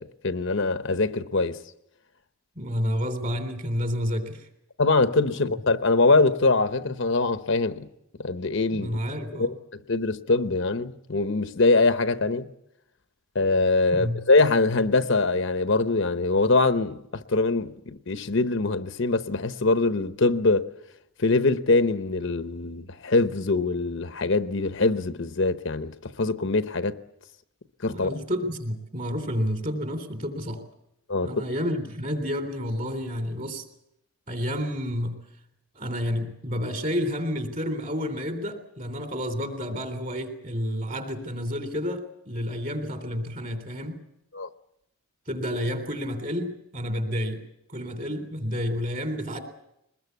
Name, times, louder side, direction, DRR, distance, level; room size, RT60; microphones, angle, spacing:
voice 1, 0.0-1.6 4.8-7.9 8.2-9.0 9.4-9.5 9.9-12.5 13.3-20.7 21.2-27.0 27.8-28.1 31.1-31.3 44.3-44.5, left 3 dB, 55° left, 0.9 m, -23 dB
voice 2, 2.6-4.5 5.3-5.4 8.7-9.5 13.9-14.2 27.9-30.6 31.2-33.6 34.3-35.2 35.7-44.0 45.3-47.4 47.7-49.4, equal, 35° right, 3.6 m, -30 dB
22.5 x 20.5 x 8.2 m
head